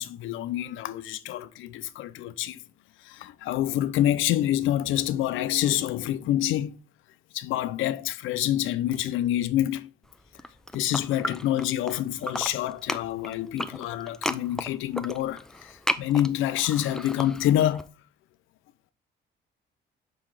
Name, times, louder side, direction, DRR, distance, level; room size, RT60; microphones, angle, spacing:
voice 1, 0.0-2.6 3.0-6.7 7.3-9.9 10.7-17.9, left 12 dB, 85° left, 0.6 m, -27 dB
sound 1, 10.3-11.9 12.2-17.8, equal, 5° left, 0.5 m, -34 dB
5.8 x 5.0 x 4.8 m
cardioid pair, 90°, 20 cm